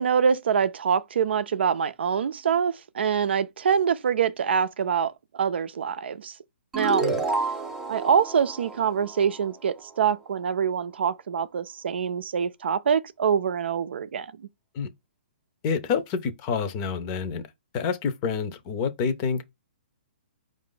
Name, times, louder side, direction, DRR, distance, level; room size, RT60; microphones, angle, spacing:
voice 1, 0.0-6.3 6.7-7.1 7.9-14.3, right 7 dB, 75° right, 0.5 m, -25 dB
sound 1, 6.7-10.0, right 4 dB, 10° right, 0.5 m, -30 dB
voice 2, 15.6-17.4 17.7-19.4, left 6 dB, 30° left, 0.6 m, -28 dB
4.7 x 2.6 x 3.8 m
hypercardioid pair, 150°, 6 cm